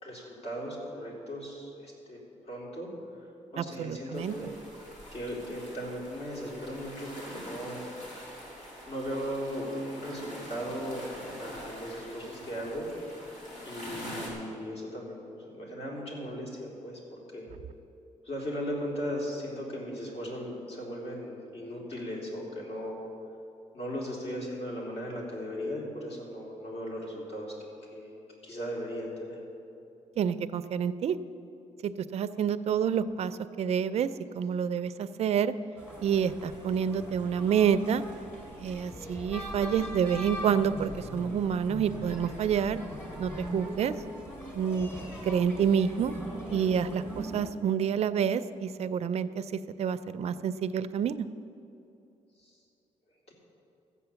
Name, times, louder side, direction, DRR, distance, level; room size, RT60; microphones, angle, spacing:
voice 1, 0.0-2.2 2.4-2.9 3.2-4.6 5.1-7.9 8.9-12.9 13.6-17.5 18.2-23.0 23.7-27.5 27.9-28.1 28.4-29.4 52.4-52.5 53.3-53.4, equal, 50° left, -3 dB, 3.3 m, -37 dB
voice 2, 3.6-4.3 30.2-31.2 31.8-34.1 34.3-35.5 36.0-38.0 38.6-42.8 43.2-43.9 44.5-44.9 45.2-46.1 46.5-49.5 49.8-51.3, right 8 dB, 55° right, 12 dB, 0.5 m, -28 dB
sound 1, 4.1-14.3, equal, 70° left, 3.5 m, -45 dB
sound 2, 35.8-47.5, equal, 15° left, 2.9 m, -41 dB
13.5 x 8.5 x 7.0 m, 2.8 s
cardioid pair, 140°, 13 cm